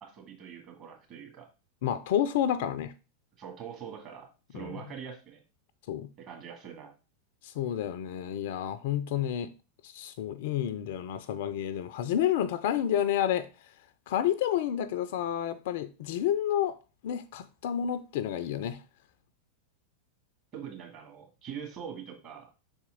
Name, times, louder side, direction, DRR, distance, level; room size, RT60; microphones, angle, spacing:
voice 1, 0.0-1.5 3.4-5.4 6.2-6.9 20.5-22.5, right 8 dB, 35° right, 1.9 m, -43 dB
voice 2, 1.8-2.9 4.5-4.7 5.9-6.1 7.4-9.5 9.8-13.5 14.1-16.8 17.0-18.8, left 10 dB, 50° left, 0.4 m, -30 dB
6.0 x 4.2 x 3.9 m
figure-of-eight pair, 90°, 0 cm